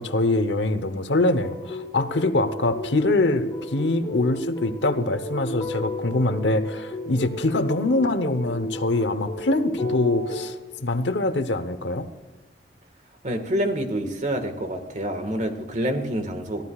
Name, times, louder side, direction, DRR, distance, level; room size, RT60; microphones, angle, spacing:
voice 1, 0.0-10.6 10.8-12.1, left 2 dB, 85° left, 11 dB, 1.0 m, -24 dB
sound 1, 1.4-10.5, left 1 dB, 20° left, 3.0 m, -33 dB
voice 2, 13.2-16.6, right 1 dB, 45° right, 7 dB, 1.7 m, -27 dB
23.0 x 15.0 x 2.4 m, 1.2 s
head